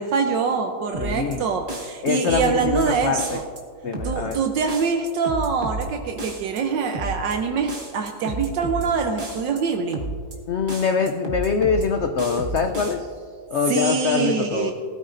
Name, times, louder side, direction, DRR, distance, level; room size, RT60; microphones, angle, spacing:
voice 1, 0.0-3.4 4.0-10.1 13.7-14.7, right 5 dB, 80° right, 4 dB, 1.4 m, -24 dB
sound 1, 0.9-1.4 1.7-2.9 3.2-3.6 3.9-4.4 4.7-5.9 6.2-6.6 6.9-7.4 7.7-8.9 9.2-9.6 9.9-10.4 10.7-11.9 12.2-12.9, right 2 dB, 30° right, 1.3 m, -31 dB
voice 2, 1.0-1.4 2.0-3.4 3.8-4.4 10.5-13.1 13.5-14.7, left 5 dB, 85° left, 6 dB, 0.6 m, -24 dB
19.5 x 13.0 x 2.6 m, 2.1 s
omnidirectional pair, 2.0 m